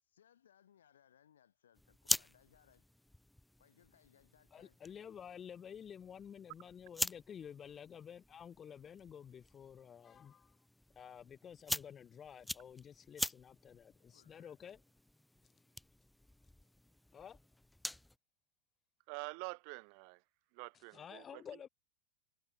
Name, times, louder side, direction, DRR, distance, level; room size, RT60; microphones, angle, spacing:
voice 1, 0.0-2.9 3.6-4.8 12.4-12.5 14.1-14.6, left 9 dB, 65° left, 6.2 m, -68 dB
sound 1, 1.7-18.2, left 1 dB, 5° left, 0.3 m, -45 dB
voice 2, 4.5-10.6 11.0-14.8 17.1-17.4 20.7-21.7, left 8 dB, 25° left, 1.1 m, -51 dB
voice 3, 19.1-20.2 20.5-21.4, right 40 dB or more, 45° right, 0.6 m, -46 dB
figure-of-eight pair, 90°, 0 cm